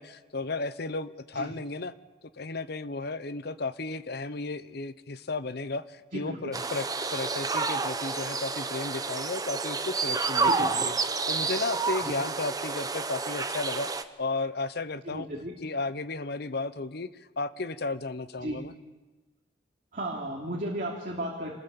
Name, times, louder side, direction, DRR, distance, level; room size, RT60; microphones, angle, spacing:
voice 1, 0.0-1.9 2.2-13.9 14.2-15.3 15.6-17.1 17.4-18.7, left 3 dB, 60° left, 14 dB, 0.9 m, -34 dB
voice 2, 6.1-6.5 10.4-10.8 12.0-12.1 15.0-15.5 18.4-18.6 19.9-21.5, right 1 dB, 45° right, -2 dB, 3.1 m, -34 dB
sound 1, 6.5-14.0, right 4 dB, 20° right, 0.9 m, -30 dB
27.0 x 20.0 x 7.1 m, 1.2 s
head